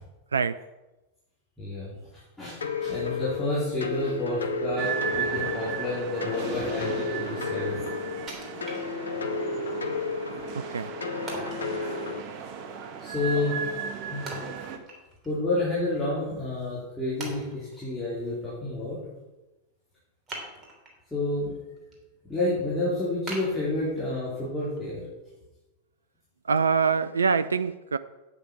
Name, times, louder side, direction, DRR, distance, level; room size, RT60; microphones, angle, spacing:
voice 1, 1.6-1.9 2.4-7.8 10.7-10.9 13.0-13.7 14.1-14.3 15.2-19.0 21.1-21.5 22.3-25.0, left 2 dB, 10° left, -10 dB, 4.3 m, -30 dB
sound 1, 2.6-12.2, left 4 dB, 70° left, 0.9 m, -33 dB
sound 2, 4.8-14.8, right 7 dB, 40° right, 1.3 m, -36 dB
Wood, 8.3-9.4 9.9-10.0 11.3-11.7 14.3-15.4 15.7-15.8 16.5-16.6 17.2-17.9 20.3-21.0 21.5-22.0 22.4-22.5 23.3-24.3 24.8-24.9, right 2 dB, 25° right, 3.0 m, -40 dB
voice 2, 10.5-10.9 26.4-28.0, right 5 dB, 75° right, 14 dB, 0.3 m, -24 dB
8.9 x 8.9 x 6.0 m, 1.1 s
figure-of-eight pair, 90°, 0 cm